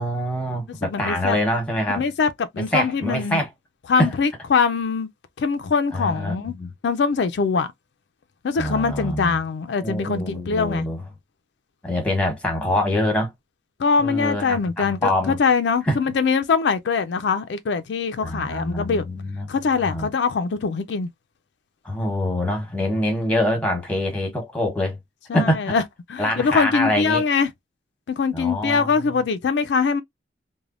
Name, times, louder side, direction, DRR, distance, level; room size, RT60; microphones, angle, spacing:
voice 1, 0.0-2.0 2.6-3.5 4.0-4.1 5.9-6.7 8.5-9.4 9.8-11.0 11.8-13.3 14.0-15.4 15.9-16.0 18.2-20.1 21.8-25.0 25.3-25.7 26.2-27.2 28.3-29.2, left 1 dB, 5° left, 1.0 m, -25 dB
voice 2, 0.9-1.4 1.9-3.4 3.9-5.1 5.4-6.5 6.8-7.7 8.4-10.8 13.8-19.1 19.5-21.1 25.3-25.8 26.1-27.5 28.1-30.0, left 5 dB, 90° left, 0.4 m, -22 dB
3.3 x 2.1 x 2.4 m
head